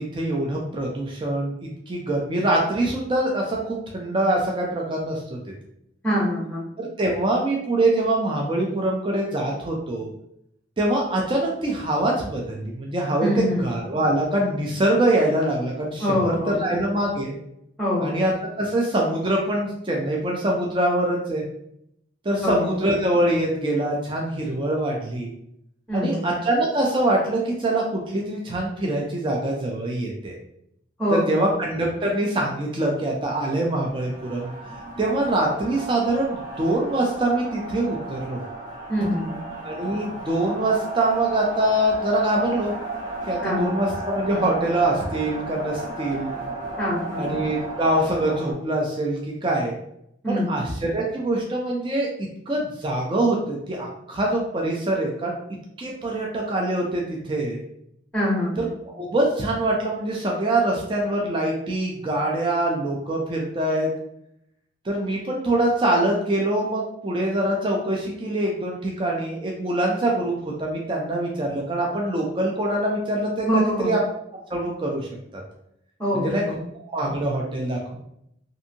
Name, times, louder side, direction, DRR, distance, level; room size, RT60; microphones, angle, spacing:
voice 1, 0.0-1.5 1.9-5.4 6.8-10.1 10.8-17.3 18.0-21.4 22.2-25.3 25.9-30.4 31.1-34.5 35.0-38.4 39.6-42.7 43.3-46.3 47.2-49.8 50.3-55.4 55.8-57.6 58.6-58.7 59.0-63.9 64.8-73.5 73.8-74.0 74.5-75.1 75.3-75.4 76.1-76.4 76.9-78.0, right 1 dB, 25° right, -1 dB, 0.4 m, -24 dB
voice 2, 6.0-6.6 13.2-13.7 16.0-16.7 17.8-18.2 22.4-22.7 25.9-26.3 31.0-31.5 38.9-39.4 43.4-43.7 46.8-47.3 50.2-50.7 58.1-58.7 73.5-73.9 76.0-76.6, equal, 5° left, -6 dB, 0.7 m, -24 dB
sound 1, 33.9-48.5, right 2 dB, 45° right, 1.2 m, -34 dB
2.6 x 2.6 x 2.7 m, 0.75 s
head